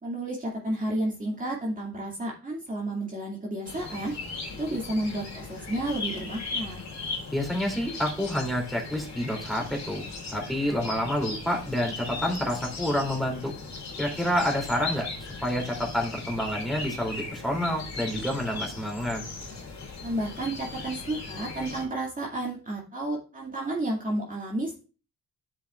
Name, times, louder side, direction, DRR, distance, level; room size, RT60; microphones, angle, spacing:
voice 1, 0.0-4.1 4.6-6.8 20.0-24.8, right 1 dB, 25° right, -3 dB, 2.3 m, -31 dB
sound 1, 3.6-21.8, left 3 dB, 65° left, 3.7 m, -38 dB
voice 2, 7.3-10.0 10.3-13.5 14.0-19.2, equal, ahead, 0 dB, 2.8 m, -28 dB
10.0 x 7.4 x 2.4 m, 0.35 s
cardioid pair, 90°, 30 cm